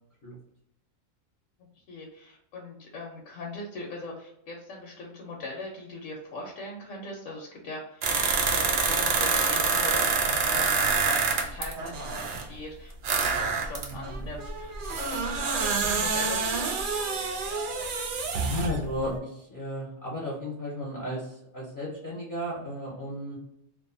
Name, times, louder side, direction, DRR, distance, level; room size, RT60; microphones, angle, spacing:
voice 1, 1.9-16.4, left 2 dB, 70° left, -2 dB, 1.0 m, -41 dB
sound 1, 8.0-12.4 13.0-18.8 19.1-19.2, right 4 dB, 90° right, 0.4 m, -27 dB
voice 2, 13.8-14.2 18.4-23.3, equal, 45° left, -6 dB, 0.8 m, -34 dB
2.5 x 2.3 x 2.4 m, 0.77 s
omnidirectional pair, 1.4 m